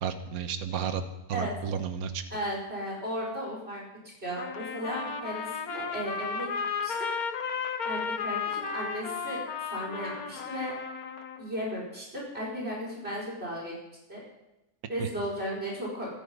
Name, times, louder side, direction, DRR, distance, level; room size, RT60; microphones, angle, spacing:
voice 1, 0.0-1.0 1.3-2.2 15.0-15.1, right 7 dB, 70° right, 8 dB, 1.6 m, -32 dB
voice 2, 2.3-3.8 4.2-6.5 6.8-7.1 7.8-9.4 9.7-10.7 11.4-13.7 14.1-14.2 14.9-16.1, equal, 40° right, -4 dB, 5.6 m, -35 dB
Trumpet, 4.4-11.5, left 5 dB, 70° left, 1.8 m, -34 dB
24.5 x 10.5 x 5.5 m, 0.95 s
omnidirectional pair, 1.6 m